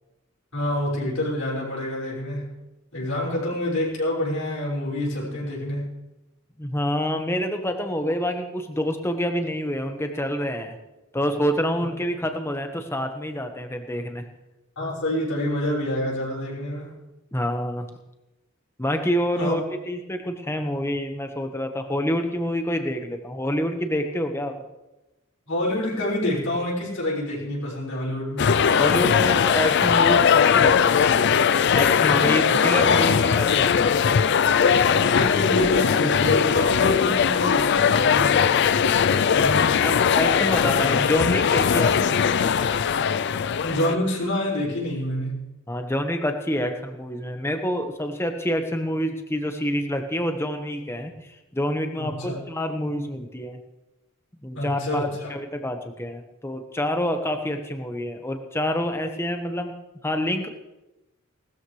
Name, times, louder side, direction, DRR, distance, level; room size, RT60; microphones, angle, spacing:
voice 1, 0.5-2.5 2.9-5.9 14.8-17.0 19.3-19.5 25.5-28.5 32.1-32.8 34.8-38.5 43.6-45.4 52.0-52.4 54.5-55.3, left 1 dB, 80° left, -6 dB, 5.8 m, -27 dB
voice 2, 6.6-10.8 11.1-14.3 17.3-17.9 18.8-19.6 19.9-24.5 28.8-31.2 31.7-34.2 39.3-42.2 45.7-51.1 51.5-53.6 54.4-59.7 60.0-60.5, equal, 10° left, 5 dB, 1.2 m, -27 dB
sound 1, 28.4-44.0, left 7 dB, 55° left, 0.4 m, -20 dB
19.0 x 13.0 x 3.3 m, 0.99 s
head